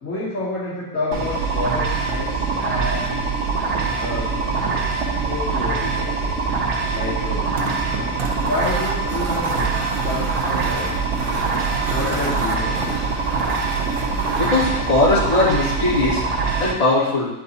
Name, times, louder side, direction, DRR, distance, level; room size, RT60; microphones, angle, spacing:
voice 1, 0.0-3.2 4.0-4.8 5.2-6.3 6.9-7.5 8.3-10.9 11.9-13.1, left 2 dB, 65° left, -9 dB, 2.2 m, -29 dB
sound 1, 1.1-16.7, right 4 dB, 55° right, 1.1 m, -23 dB
gnashing metal, 7.2-16.6, right 4 dB, 75° right, 1.3 m, -31 dB
voice 2, 14.3-16.2 16.6-17.3, left 2 dB, 30° left, -10 dB, 2.7 m, -19 dB
8.3 x 4.6 x 4.2 m, 0.94 s
omnidirectional pair, 1.5 m